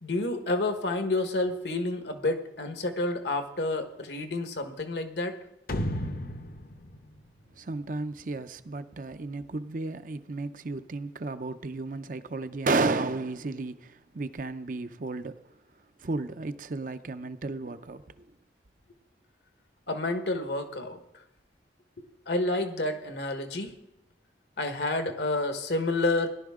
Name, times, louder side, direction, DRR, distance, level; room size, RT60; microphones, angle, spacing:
voice 1, 0.0-5.3 19.9-21.0 22.3-23.7 24.6-26.3, left 2 dB, 70° left, 1.4 m, -29 dB
sound 1, 5.7-8.2, left 1 dB, 55° left, 0.9 m, -34 dB
voice 2, 7.5-15.4 16.0-18.0, right 3 dB, 45° right, 0.6 m, -33 dB
17.5 x 11.5 x 3.7 m
head